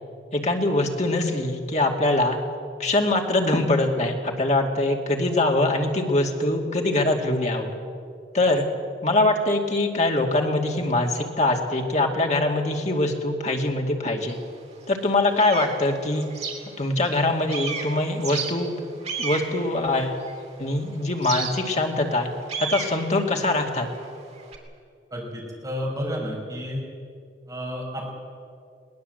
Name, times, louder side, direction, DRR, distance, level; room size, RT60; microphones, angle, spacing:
voice 1, 0.3-2.4 2.8-7.7 8.3-8.7 9.0-14.4 14.9-16.3 16.8-18.8 19.2-20.2 20.6-22.3 22.6-23.9, left 2 dB, 40° left, 2 dB, 2.4 m, -23 dB
sound 1, 14.3-14.4 14.9-17.2 17.5-20.6 21.2-24.6, right 5 dB, 35° right, 2.9 m, -33 dB
voice 2, 25.1-26.8 27.5-28.1, equal, 20° right, -2 dB, 5.6 m, -31 dB
21.5 x 19.0 x 7.9 m, 2.4 s
head